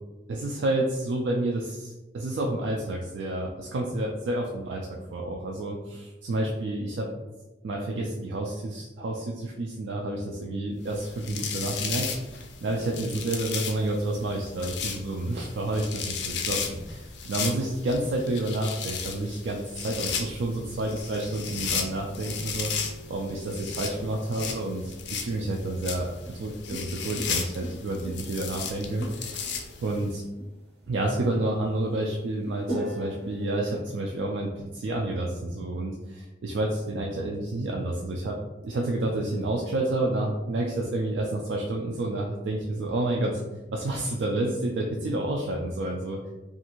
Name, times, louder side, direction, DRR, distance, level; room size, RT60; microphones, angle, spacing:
voice 1, 0.3-7.1 7.6-30.2 30.9-38.4 38.6-43.4 43.7-46.2, right 1 dB, 85° right, -1 dB, 0.3 m, -30 dB
sound 1, 10.9-30.1, left 6 dB, 70° left, 0.4 m, -35 dB
sound 2, 20.4-33.6, equal, 65° right, 0.9 m, -43 dB
2.6 x 2.4 x 2.9 m, 1.1 s
head